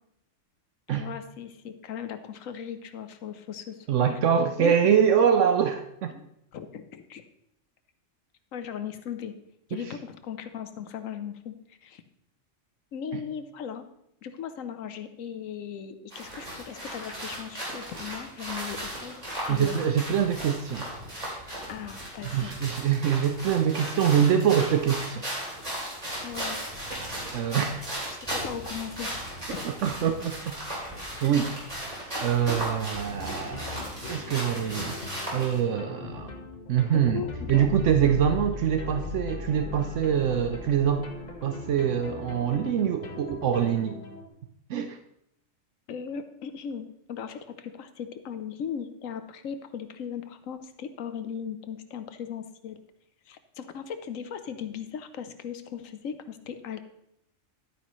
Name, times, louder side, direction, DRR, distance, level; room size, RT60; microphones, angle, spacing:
voice 1, 0.9-4.2 4.6-4.8 6.1-6.2 6.5-7.2 8.5-9.3 9.7-11.5 11.8-12.0 12.9-13.8 14.2-19.2 19.5-19.9 21.7-22.5 26.2-26.6 28.1-29.1 29.5-29.7 36.9-37.7 45.9-52.8 53.3-56.8, left 7 dB, 85° left, 9 dB, 1.2 m, -38 dB
voice 2, 3.9-6.1 9.7-9.9 19.5-20.9 22.3-25.3 27.3-27.8 29.6-30.6 31.2-31.5 32.2-33.8 34.0-35.0 35.3-36.3 36.7-41.1 41.4-44.0 44.7-45.0, right 8 dB, 70° right, 7 dB, 0.9 m, -24 dB
sound 1, 16.1-35.6, right 1 dB, 30° right, 3.1 m, -36 dB
sound 2, 33.1-44.3, left 4 dB, 35° left, 1.2 m, -39 dB
11.0 x 9.2 x 3.1 m, 0.79 s
omnidirectional pair, 1.3 m